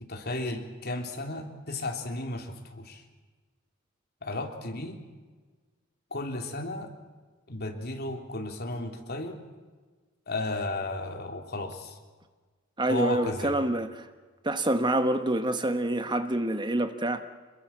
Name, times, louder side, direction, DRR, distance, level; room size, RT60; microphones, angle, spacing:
voice 1, 0.1-3.0 4.2-5.0 6.1-6.9 7.5-9.4 10.3-12.0 12.9-13.6, left 2 dB, 50° left, 3.4 m, -34 dB
voice 2, 12.8-14.1 14.4-17.2, right 1 dB, 20° right, 1.2 m, -27 dB
27.0 x 22.0 x 7.3 m
head